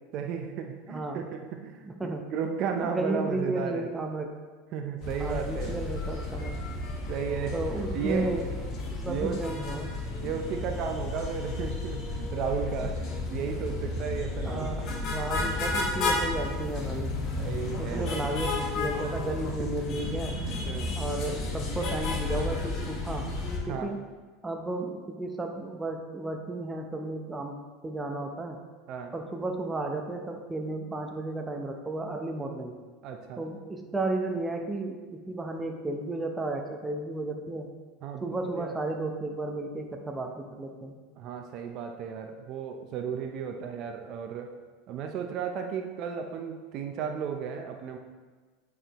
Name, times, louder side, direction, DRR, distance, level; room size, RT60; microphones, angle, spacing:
voice 1, 0.1-3.9 4.7-5.9 7.1-7.6 7.9-8.4 9.1-9.4 10.2-13.0 13.3-14.7 17.3-18.3 19.4-19.7 20.5-21.0 23.6-23.9 28.9-29.1 33.0-33.4 38.0-38.8 41.2-44.5 44.9-48.0, right 7 dB, 50° right, 4 dB, 0.6 m, -34 dB
voice 2, 0.9-1.3 1.8-2.3 2.8-4.3 5.2-6.6 7.5-8.6 8.9-9.9 14.4-17.1 17.8-20.4 21.0-23.3 23.7-24.0 24.4-28.6 29.1-32.8 33.4-37.7 38.2-40.9, right 2 dB, 15° right, 3 dB, 0.7 m, -33 dB
sound 1, 5.0-23.6, left 2 dB, 45° left, 1.2 m, -32 dB
8.7 x 4.7 x 3.0 m, 1.4 s
supercardioid pair, 120°, 0 cm